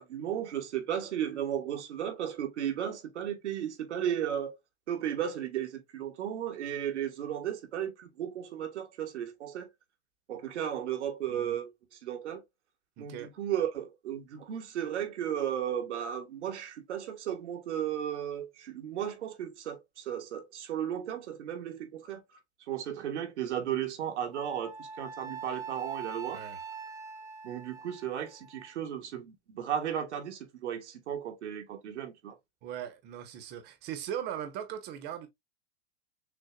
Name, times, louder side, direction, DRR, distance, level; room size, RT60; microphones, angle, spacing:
voice 1, 0.0-4.6 4.9-9.7 10.3-11.7 12.0-12.4 13.0-22.2 22.7-26.4 27.4-32.4, right 9 dB, 85° right, 1.5 m, -35 dB
voice 2, 13.0-13.3 26.3-26.6 32.6-35.3, right 9 dB, 30° right, 1.0 m, -39 dB
Wind instrument woodwind instrument, 24.3-28.7, right 5 dB, 10° right, 0.5 m, -43 dB
6.6 x 2.4 x 2.3 m
supercardioid pair, 145°, 34 cm